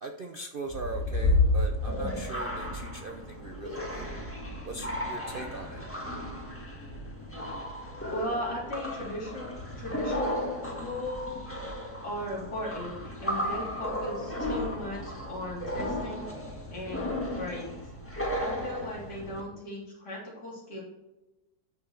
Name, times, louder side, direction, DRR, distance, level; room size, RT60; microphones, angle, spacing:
voice 1, 0.0-4.1 4.6-5.8, right 3 dB, 70° right, 4 dB, 0.5 m, -40 dB
sound 1, 0.7-19.4, left 1 dB, 10° left, 1.4 m, -33 dB
voice 2, 8.1-9.5 9.8-11.3 12.0-16.3 16.7-17.8 18.4-20.8, left 1 dB, 65° left, -5 dB, 4.0 m, -37 dB
8.4 x 6.5 x 4.5 m, 1.0 s
omnidirectional pair, 1.9 m